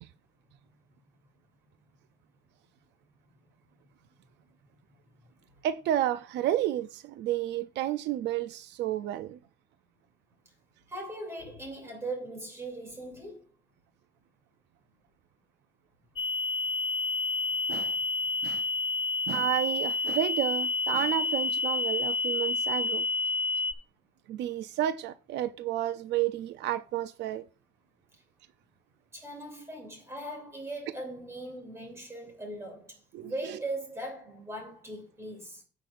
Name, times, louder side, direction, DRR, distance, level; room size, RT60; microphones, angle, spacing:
voice 1, 5.6-9.4 17.7-18.0 18.4-18.6 19.3-23.1 24.3-27.4 33.1-33.6, right 12 dB, 70° right, 0.5 m, -31 dB
voice 2, 10.9-13.4 29.1-35.6, right 1 dB, 15° right, 2.7 m, -39 dB
sound 1, 16.2-23.7, left 3 dB, 30° left, 0.6 m, -29 dB
15.5 x 6.0 x 2.5 m
cardioid pair, 170°, 18 cm